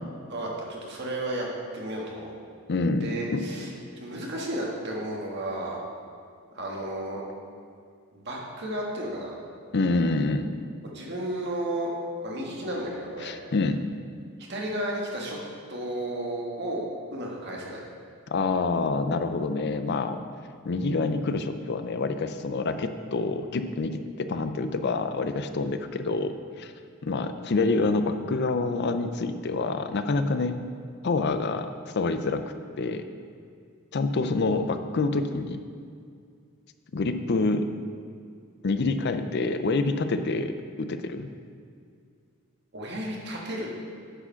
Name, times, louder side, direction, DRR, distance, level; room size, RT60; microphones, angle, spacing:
voice 1, 0.3-1.5 1.7-2.3 3.0-3.7 4.0-5.8 6.5-7.2 8.1-9.3 10.9-11.9 12.2-13.3 14.5-15.4 15.7-17.8 42.7-43.7, right 1 dB, 50° right, -2 dB, 1.6 m, -33 dB
voice 2, 2.7-3.5 9.7-10.5 13.2-13.8 18.3-20.2 20.6-26.7 27.0-30.6 31.0-31.7 32.0-32.4 32.8-33.0 33.9-35.6 36.9-37.7 38.6-41.3, left 3 dB, 50° left, 9 dB, 0.5 m, -27 dB
10.0 x 4.9 x 5.7 m, 2.3 s
head